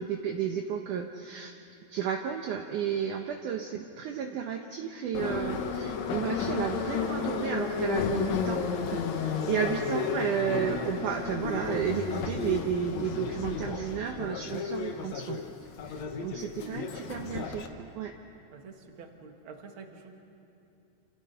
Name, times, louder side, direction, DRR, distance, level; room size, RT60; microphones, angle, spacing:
voice 1, 0.0-1.5 1.9-15.4 15.8-18.1, right 8 dB, 75° right, 3 dB, 1.9 m, -32 dB
Subway metro underground, 5.1-17.7, left 6 dB, 65° left, 1.8 m, -33 dB
voice 2, 18.5-20.1, right 5 dB, 45° right, 3 dB, 1.8 m, -48 dB
28.5 x 28.0 x 5.7 m, 2.8 s
omnidirectional pair, 4.8 m